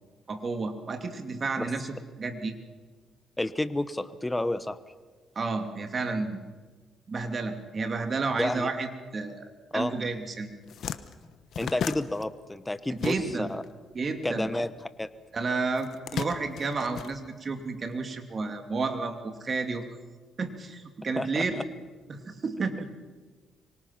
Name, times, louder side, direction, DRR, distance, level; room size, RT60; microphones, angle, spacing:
voice 1, 0.3-2.5 5.3-6.4 7.1-10.5 12.9-13.5 13.9-14.5 15.3-19.9 20.4-21.6 22.1-23.0, right 4 dB, 40° right, 6 dB, 2.7 m, -31 dB
voice 2, 3.4-4.8 8.4-8.7 9.7-9.9 11.6-13.6 14.2-14.7 15.0-15.1 21.2-21.6, left 1 dB, 10° left, 13 dB, 1.0 m, -30 dB
sound 1, 10.1-10.2 10.5-13.6 13.9-15.1 15.7-17.8, left 8 dB, 65° left, 1.1 m, -36 dB
25.0 x 24.5 x 5.9 m, 1.3 s
cardioid pair, 90°, 0 cm